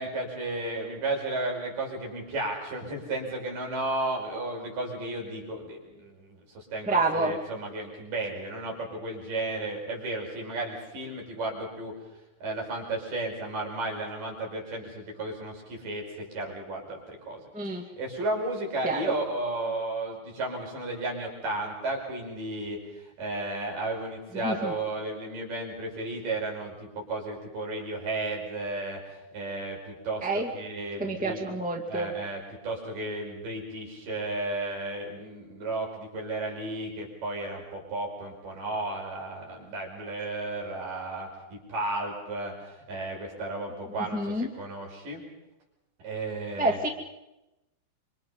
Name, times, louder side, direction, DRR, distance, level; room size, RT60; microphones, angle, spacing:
voice 1, 0.0-11.9 12.4-17.4 17.7-22.8 23.2-29.0 29.3-31.4 31.9-42.5 42.9-45.2 46.0-46.8, right 2 dB, 70° right, 0 dB, 6.7 m, -33 dB
voice 2, 6.8-7.4 17.5-17.8 18.8-19.1 24.3-24.7 30.2-30.5 31.0-32.1 44.1-44.5 46.6-46.9, right 2 dB, 5° right, 2 dB, 1.3 m, -28 dB
26.5 x 25.0 x 5.6 m, 0.96 s
omnidirectional pair, 4.0 m